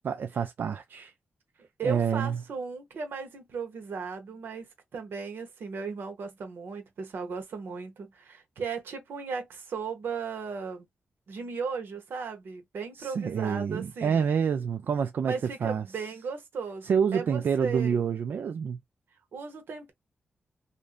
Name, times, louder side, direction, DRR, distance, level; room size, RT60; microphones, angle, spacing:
voice 1, 0.0-1.1 1.8-2.4 13.0-15.8 16.8-18.8, right 7 dB, 70° right, 0.3 m, -28 dB
voice 2, 1.8-10.9 11.3-14.3 15.3-18.0 19.3-19.9, right 5 dB, 85° right, 1.0 m, -36 dB
2.6 x 2.1 x 2.4 m
wide cardioid pair, 110°, 4 cm